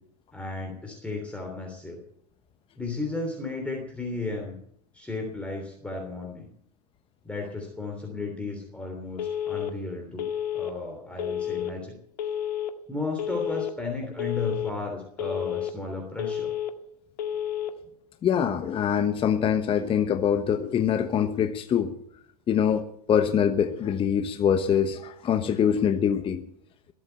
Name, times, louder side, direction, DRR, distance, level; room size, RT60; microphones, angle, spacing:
voice 1, 0.3-2.0 2.8-4.5 4.9-6.5 7.2-12.0 12.9-16.5, left 3 dB, 5° left, 1 dB, 3.2 m, -34 dB
Telephone, 9.2-9.7 10.2-10.7 11.2-11.7 12.2-12.7 13.2-13.7 14.2-14.7 15.2-15.7 16.2-16.7 17.2-17.7, left 10 dB, 75° left, 1.9 m, -30 dB
voice 2, 18.2-21.9 22.5-26.4, left 8 dB, 25° left, 8 dB, 1.1 m, -24 dB
21.5 x 8.4 x 8.0 m, 0.69 s
hypercardioid pair, 110°, 21 cm